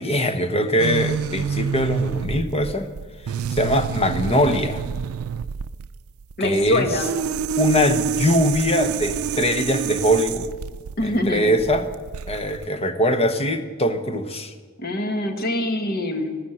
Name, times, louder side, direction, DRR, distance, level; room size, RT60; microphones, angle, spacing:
voice 1, 0.0-2.9 3.5-4.8 6.4-6.9 7.6-10.5 11.0-11.9 12.3-14.5, equal, 30° left, 9 dB, 1.0 m, -22 dB
sound 1, 0.8-12.6, right 7 dB, 90° right, 0.4 m, -28 dB
voice 2, 6.4-7.1 11.0-11.6 14.8-16.4, left 1 dB, 45° left, 6 dB, 1.5 m, -24 dB
13.5 x 13.0 x 7.9 m, 1.5 s
head